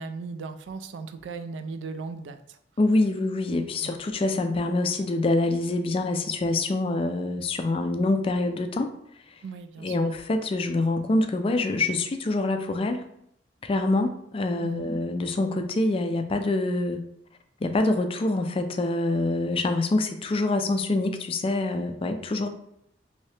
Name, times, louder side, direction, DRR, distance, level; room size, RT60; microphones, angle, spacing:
voice 1, 0.0-2.6 3.8-3.9 9.4-10.0 14.6-14.8, right 4 dB, 75° right, 9 dB, 0.3 m, -37 dB
voice 2, 2.8-8.9 9.8-13.1 13.6-17.0 17.6-22.5, left 2 dB, 30° left, 7 dB, 0.3 m, -25 dB
3.1 x 2.7 x 3.2 m, 0.74 s
head